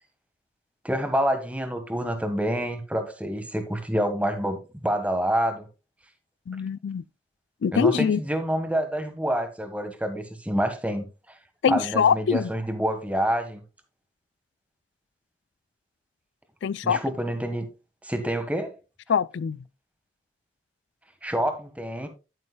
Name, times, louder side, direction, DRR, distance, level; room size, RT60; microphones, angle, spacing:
voice 1, 0.8-4.6 4.8-5.7 7.7-11.1 11.7-13.6 16.8-17.7 18.0-18.7 21.2-22.1, equal, 5° right, 1.4 m, -27 dB
voice 2, 6.5-7.0 7.6-8.2 11.6-12.5 16.6-17.0 19.1-19.6, left 6 dB, 75° left, 0.4 m, -23 dB
11.0 x 9.5 x 2.2 m
head